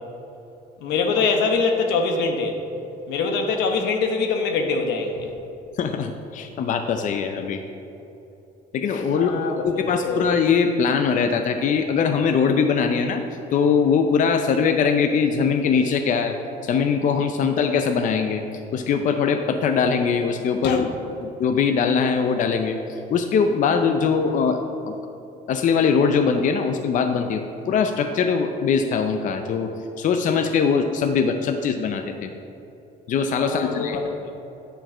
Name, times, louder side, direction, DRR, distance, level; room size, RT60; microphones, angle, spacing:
voice 1, 0.8-2.6 3.1-5.3 9.1-10.2 20.6-20.8 33.4-34.0 34.2-34.3, left 4 dB, 85° left, 4 dB, 1.0 m, -24 dB
voice 2, 5.8-7.6 8.7-13.2 13.5-16.4 16.6-18.4 18.7-20.9 21.2-24.6 24.9-25.0 25.5-29.7 30.0-32.3 33.1-34.0, left 6 dB, 50° left, 6 dB, 0.5 m, -21 dB
9.0 x 4.6 x 6.0 m, 2.9 s
cardioid pair, 110°, 17 cm